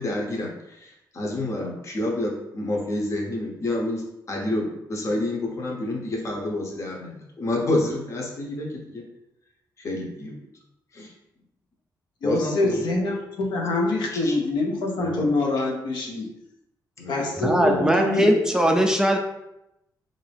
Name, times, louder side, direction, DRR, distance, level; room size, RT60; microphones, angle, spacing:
voice 1, 0.0-9.0 9.8-10.3 10.9-11.1 12.2-12.9 14.1-14.4 15.0-15.3 15.9-16.0 17.0-17.3 17.6-17.8 18.1-18.2, left 1 dB, 40° left, 0 dB, 0.8 m, -29 dB
voice 2, 12.2-16.3 17.1-18.8, left 2 dB, 85° left, 1 dB, 0.7 m, -25 dB
voice 3, 17.4-19.2, equal, 10° right, 2 dB, 0.3 m, -20 dB
3.6 x 2.6 x 3.3 m, 0.87 s
wide cardioid pair, 150°, 7 cm